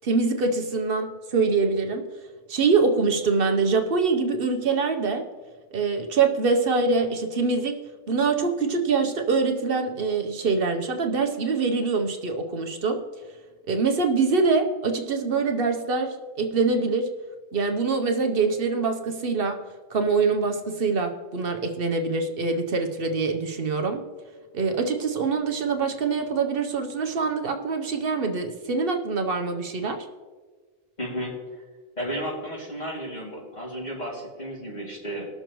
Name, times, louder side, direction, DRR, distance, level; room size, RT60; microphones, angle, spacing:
voice 1, 0.0-2.1 2.5-5.3 5.7-7.8 8.1-13.0 13.7-17.1 17.5-19.6 19.9-24.0 24.5-30.0, right 4 dB, 65° right, 5 dB, 1.0 m, -24 dB
voice 2, 31.0-31.3 32.0-35.3, equal, 45° left, -4 dB, 2.8 m, -33 dB
20.0 x 6.7 x 3.0 m, 1.4 s
omnidirectional pair, 1.0 m